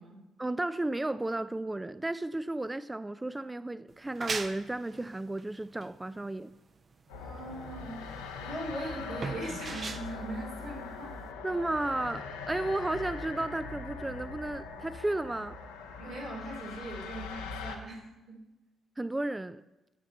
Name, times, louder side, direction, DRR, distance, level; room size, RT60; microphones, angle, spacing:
voice 1, 0.4-6.5 11.4-15.6 19.0-19.6, right 2 dB, 15° right, 0.4 m, -33 dB
sound 1, 3.9-11.3, right 4 dB, 45° right, 0.7 m, -41 dB
sound 2, 7.1-17.8, left 4 dB, 85° left, 1.0 m, -41 dB
voice 2, 7.1-11.2 16.0-18.4, right 1 dB, 75° right, 2.6 m, -40 dB
15.0 x 7.1 x 4.1 m
hypercardioid pair, 45°, 0 cm